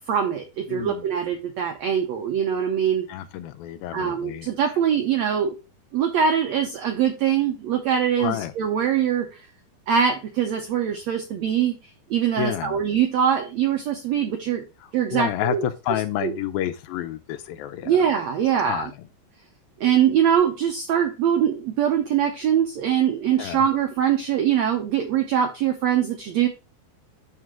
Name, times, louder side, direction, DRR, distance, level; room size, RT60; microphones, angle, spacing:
voice 1, 0.1-3.1 3.9-5.6 5.9-9.4 9.9-11.8 12.1-14.6 14.9-15.6 16.2-16.3 17.8-18.9 19.8-26.5, right 8 dB, 85° right, 1.5 m, -23 dB
voice 2, 0.7-1.0 3.1-4.5 8.2-8.5 12.4-12.8 14.8-18.1 18.6-18.9 23.4-23.7, left 12 dB, 85° left, 2.4 m, -29 dB
11.0 x 3.8 x 3.6 m
omnidirectional pair, 4.2 m